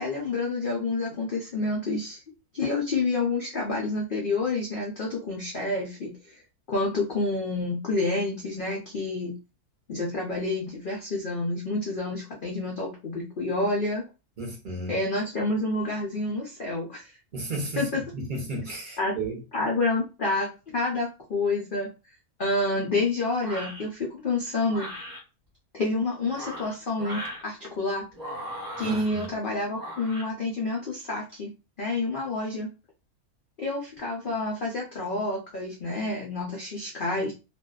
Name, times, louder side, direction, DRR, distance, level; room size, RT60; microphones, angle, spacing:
voice 1, 0.0-2.2 2.5-6.4 6.7-9.3 9.9-14.0 14.9-17.1 17.8-18.0 19.0-19.1 19.5-20.5 20.7-21.9 22.4-24.9 25.7-28.1 28.8-31.5 31.8-32.7 33.6-37.3, left 2 dB, 70° left, 0.5 m, -28 dB
voice 2, 14.4-15.0 17.3-19.4 28.8-29.3, right 2 dB, 55° right, 0.5 m, -33 dB
sound 1, 23.4-23.8 24.7-25.2 26.2-27.4 28.1-29.3 29.7-30.3, equal, 15° right, 0.8 m, -38 dB
2.5 x 2.2 x 2.3 m
omnidirectional pair, 1.6 m